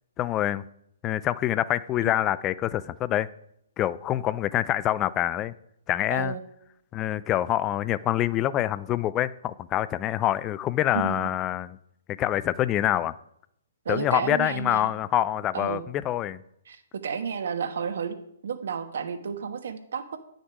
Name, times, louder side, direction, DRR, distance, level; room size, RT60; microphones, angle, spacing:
voice 1, 0.2-0.6 1.0-3.3 3.8-5.5 5.9-6.3 6.9-11.8 12.1-13.1 13.9-16.4, left 12 dB, 25° left, 0.4 m, -26 dB
voice 2, 6.1-6.4 10.9-11.3 13.8-14.9 15.5-15.8 16.7-18.2 18.4-20.2, right 6 dB, 60° right, 1.2 m, -31 dB
9.8 x 6.4 x 4.7 m
figure-of-eight pair, 130°, 0 cm